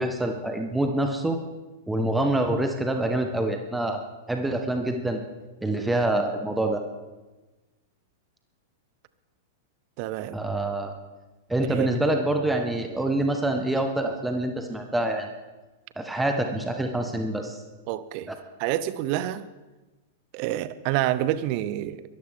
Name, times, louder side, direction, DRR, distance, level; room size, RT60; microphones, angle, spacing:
voice 1, 0.0-1.4 1.9-4.0 4.3-5.2 5.6-6.8 10.3-10.9 11.5-15.3 16.0-17.6 18.3-18.4, right 1 dB, 5° right, 1.4 m, -26 dB
voice 2, 10.0-10.4 11.7-11.9 17.9-18.3 18.6-19.4 20.3-22.2, right 13 dB, 45° right, 0.7 m, -28 dB
22.5 x 13.5 x 3.7 m
figure-of-eight pair, 100°, 0 cm